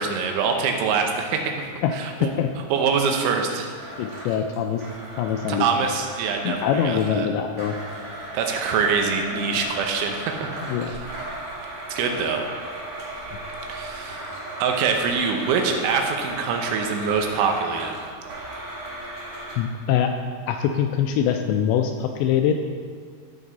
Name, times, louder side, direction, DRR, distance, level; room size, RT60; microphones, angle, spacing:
voice 1, 0.0-1.7 1.9-2.3 2.7-3.7 5.5-7.3 8.3-10.6 10.9-11.0 11.9-12.4 13.7-14.3 14.6-18.0, right 5 dB, 85° right, 3 dB, 3.3 m, -24 dB
Domestic sounds home sounds, 3.8-7.2 7.6-19.6, right 1 dB, 65° right, 1.1 m, -36 dB
voice 2, 4.0-4.8 5.2-5.7 6.4-7.8 9.3-9.6 10.7-11.0 19.6-20.1 20.5-22.5, left 9 dB, 85° left, 5 dB, 2.6 m, -23 dB
13.0 x 6.2 x 4.0 m, 2.1 s
omnidirectional pair, 5.4 m